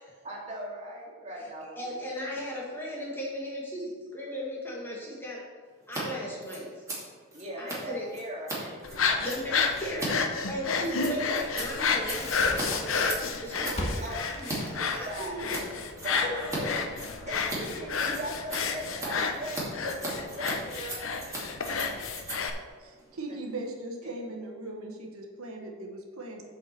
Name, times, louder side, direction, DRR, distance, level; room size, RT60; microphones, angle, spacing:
voice 1, 0.2-2.0 7.3-9.6 9.9-10.4 14.0-14.3 14.9-15.5 15.9-16.3 17.3-21.1 24.0-24.3, right 1 dB, 30° right, -3 dB, 2.2 m, -40 dB
voice 2, 1.8-5.4 5.9-6.8 7.6-8.1 9.2-10.1 10.5-15.6 16.1-16.8, equal, 10° left, -5 dB, 1.9 m, -37 dB
Scissors, 5.8-6.0 6.3-14.6 14.9-15.6 16.0-16.6 16.9-23.7, right 2 dB, 15° right, 2.6 m, -39 dB
sound 1, 8.8-22.5, left 5 dB, 70° left, 0.8 m, -31 dB
Crackle, 12.1-18.9, left 1 dB, 30° left, 1.5 m, -40 dB
voice 3, 22.8-26.4, right 2 dB, 90° right, 1 dB, 1.3 m, -39 dB
7.7 x 5.5 x 6.9 m, 1.5 s
head